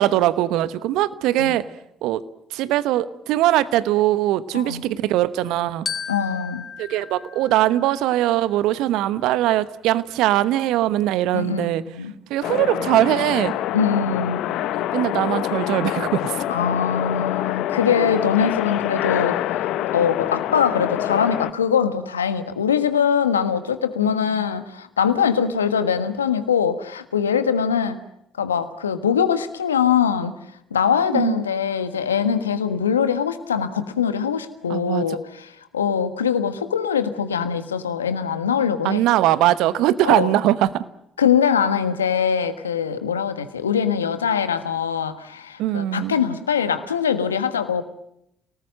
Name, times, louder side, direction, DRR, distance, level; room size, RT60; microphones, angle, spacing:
voice 1, 0.0-1.7 2.0-2.2 2.5-5.8 6.8-11.8 12.3-13.5 14.9-16.4 24.0-24.4 31.1-31.4 34.7-35.0 38.8-40.8 45.6-46.1, right 14 dB, 70° right, 16 dB, 1.0 m, -21 dB
Glockenspiel, 5.9-8.3, left 6 dB, 35° left, 2.7 m, -35 dB
voice 2, 6.1-6.6 11.3-12.1 13.7-14.4 16.5-19.4 19.9-28.0 28.4-30.3 30.7-39.0 40.0-40.3 41.2-47.8, left 7 dB, 90° left, 10 dB, 1.4 m, -22 dB
sound 1, 12.4-21.5, left 13 dB, 65° left, 1.0 m, -26 dB
29.5 x 19.0 x 7.6 m, 0.79 s
hypercardioid pair, 50°, 0 cm